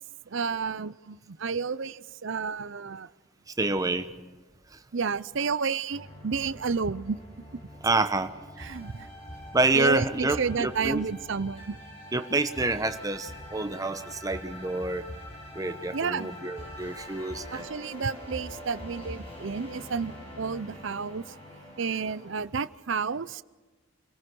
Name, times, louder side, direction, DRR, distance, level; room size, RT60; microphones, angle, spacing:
voice 1, 0.3-3.1 4.9-7.2 8.6-9.1 9.7-11.8 15.9-16.3 17.5-21.3 21.8-23.4, right 5 dB, 60° right, 16 dB, 0.6 m, -31 dB
voice 2, 3.6-4.1 7.8-8.3 9.5-11.0 12.1-15.1 15.5-17.7, right 2 dB, 15° right, 9 dB, 1.0 m, -27 dB
sound 1, 5.9-22.4, equal, 25° left, 7.1 m, -44 dB
28.0 x 18.0 x 6.2 m, 1.3 s
head